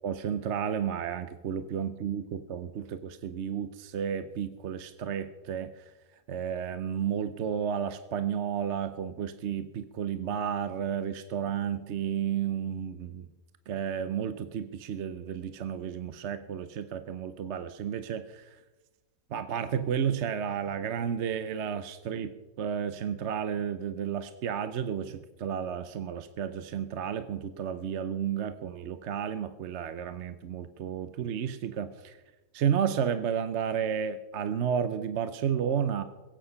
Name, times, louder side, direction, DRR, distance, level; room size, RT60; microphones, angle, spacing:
voice 1, 0.0-5.8 6.3-13.3 13.7-18.5 19.3-32.2 32.5-36.0, right 8 dB, 60° right, 11 dB, 0.9 m, -32 dB
21.5 x 8.9 x 5.6 m, 1.1 s
omnidirectional pair, 1.6 m